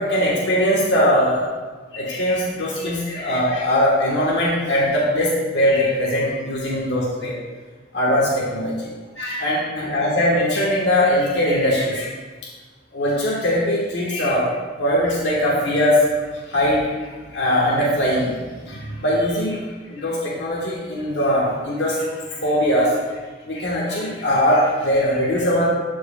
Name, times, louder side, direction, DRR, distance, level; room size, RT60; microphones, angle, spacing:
voice 1, 0.0-1.5 1.9-7.3 7.9-8.9 9.2-12.1 12.9-14.5 14.8-22.9 23.5-25.7, equal, 70° left, -5 dB, 1.3 m, -21 dB
12.0 x 4.8 x 2.3 m, 1.4 s
head